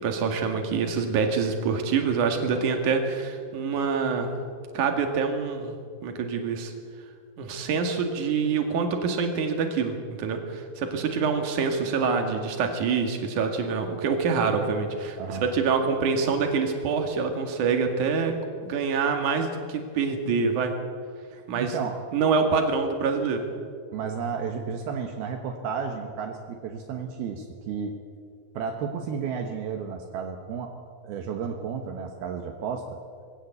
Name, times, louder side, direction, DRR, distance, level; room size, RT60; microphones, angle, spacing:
voice 1, 0.0-4.3 4.7-5.8 6.0-6.7 7.4-18.3 18.6-20.7 21.5-21.7 22.1-23.5, right 5 dB, 55° right, 4 dB, 3.3 m, -26 dB
voice 2, 21.3-22.0 23.9-27.9 28.5-30.8 31.0-33.0, right 6 dB, 75° right, 4 dB, 3.1 m, -32 dB
22.0 x 16.5 x 8.2 m, 2.1 s
omnidirectional pair, 4.5 m